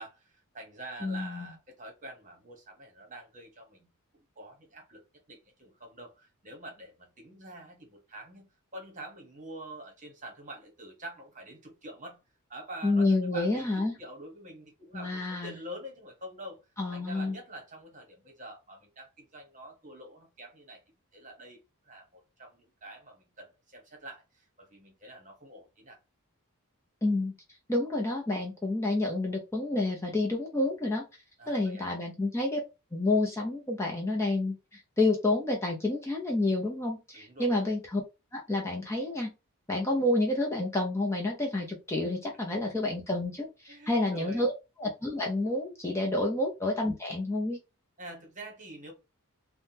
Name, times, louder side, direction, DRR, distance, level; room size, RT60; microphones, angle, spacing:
voice 1, 0.0-3.9 4.4-5.0 5.3-8.5 8.7-12.2 12.5-16.6 16.9-20.8 21.1-26.0 31.4-31.9 37.1-37.7 43.7-44.5 46.1-46.3 48.0-48.9, right 1 dB, 35° right, 1.1 m, -46 dB
voice 2, 1.0-1.5 12.8-14.0 14.9-15.5 16.8-17.4 27.0-27.3 27.7-31.1 31.5-32.6 32.9-38.0 38.3-39.3 39.7-44.5 44.8-47.6, left 2 dB, 10° left, 0.6 m, -29 dB
3.5 x 2.2 x 2.8 m
head